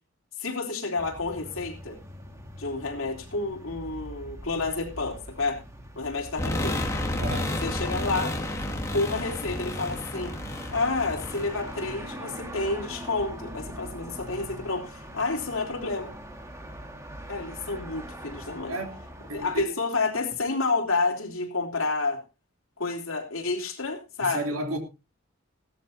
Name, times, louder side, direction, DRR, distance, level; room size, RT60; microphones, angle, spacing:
voice 1, 0.4-2.0 2.6-5.6 5.9-6.9 7.6-8.4 8.9-10.4 10.7-16.1 17.3-18.8 19.3-22.2 22.8-24.4, left 3 dB, 80° left, 3.3 m, -29 dB
sound 1, 1.0-19.6, equal, 15° right, 1.9 m, -43 dB
sound 2, 6.4-12.5, left 1 dB, 15° left, 2.1 m, -31 dB
voice 2, 7.2-7.6 18.7-19.0 19.3-19.6 24.2-24.8, right 1 dB, 90° right, 3.2 m, -32 dB
17.0 x 13.0 x 2.7 m
head